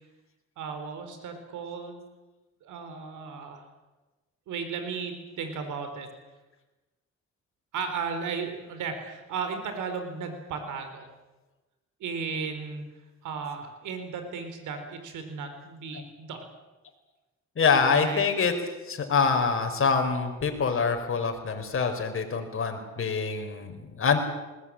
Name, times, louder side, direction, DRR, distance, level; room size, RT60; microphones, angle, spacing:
voice 1, 0.6-2.0 2.6-3.6 4.5-6.1 7.7-11.1 12.0-12.9 13.2-16.4 17.9-18.2, right 5 dB, 80° right, 7 dB, 4.4 m, -35 dB
voice 2, 17.6-18.5 18.9-24.2, left 5 dB, 45° left, 5 dB, 4.7 m, -25 dB
21.0 x 18.5 x 8.9 m, 1.1 s
cardioid pair, 90°, 30 cm